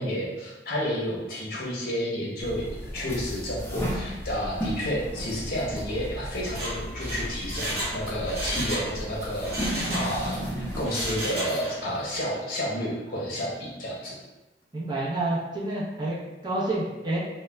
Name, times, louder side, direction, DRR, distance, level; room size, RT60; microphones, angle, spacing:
voice 1, 0.0-2.7 2.9-14.1, equal, 55° left, -4 dB, 0.7 m, -31 dB
sound 1, 2.4-10.9, equal, 15° left, 0.4 m, -34 dB
Mechanisms, 6.5-8.9 9.2-10.4 10.8-11.9 12.2-12.3, right 1 dB, 60° right, 0.9 m, -33 dB
voice 2, 14.7-17.2, right 2 dB, 25° right, -7 dB, 0.7 m, -29 dB
2.3 x 2.1 x 3.1 m, 1.1 s
head